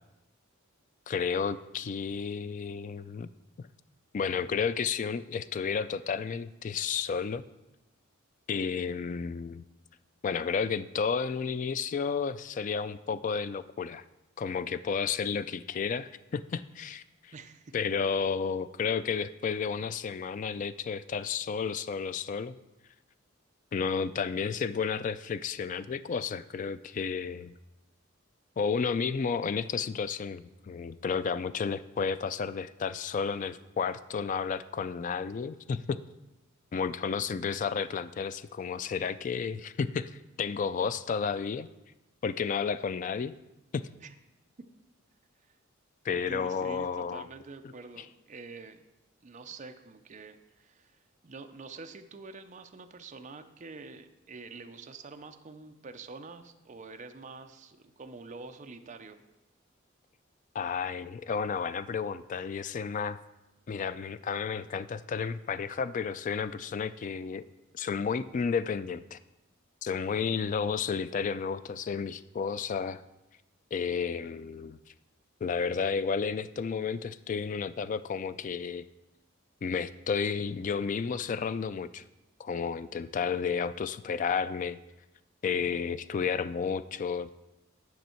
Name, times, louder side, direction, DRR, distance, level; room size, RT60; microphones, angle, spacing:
voice 1, 1.1-3.3 3.6-3.7 4.1-7.4 8.5-9.6 10.2-14.0 14.4-17.3 17.7-22.5 23.7-27.5 28.6-36.0 36.7-40.1 40.4-41.7 42.2-43.3 43.7-43.9 46.0-47.3 60.5-63.2 63.7-67.5 67.7-69.2 69.8-73.0 73.7-74.8 75.4-78.9 79.6-82.0 82.4-84.8 85.4-87.3, left 6 dB, 40° left, 14 dB, 0.3 m, -32 dB
voice 2, 17.3-17.7 44.0-44.1 46.3-48.9 49.2-51.0 51.2-59.2, right 4 dB, 35° right, 7 dB, 0.5 m, -46 dB
9.4 x 6.3 x 4.4 m, 0.97 s
head